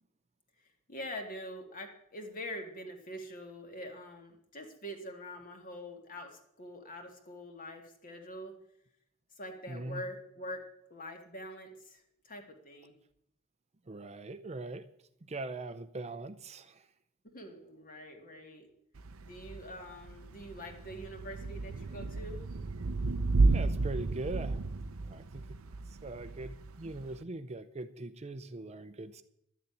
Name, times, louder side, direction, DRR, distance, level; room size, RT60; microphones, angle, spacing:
voice 1, 0.9-8.5 9.4-10.6 10.9-13.0 17.3-18.7 19.2-22.4, equal, 40° left, 4 dB, 2.1 m, -44 dB
voice 2, 9.7-10.0 13.9-14.8 15.3-16.9 23.5-24.6 25.0-25.6 26.0-29.2, right 2 dB, 30° right, 11 dB, 0.6 m, -41 dB
Thunder / Rain, 19.0-27.2, right 3 dB, 90° right, 0.7 m, -33 dB
12.0 x 6.9 x 9.4 m, 0.75 s
head